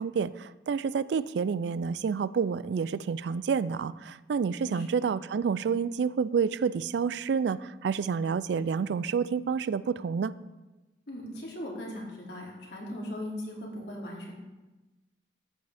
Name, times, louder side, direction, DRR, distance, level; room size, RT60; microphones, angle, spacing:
voice 1, 0.0-10.3, right 6 dB, 70° right, 17 dB, 0.3 m, -29 dB
voice 2, 4.6-5.0 11.1-14.3, left 1 dB, 70° left, -3 dB, 2.8 m, -39 dB
13.5 x 8.0 x 3.4 m, 1.1 s
head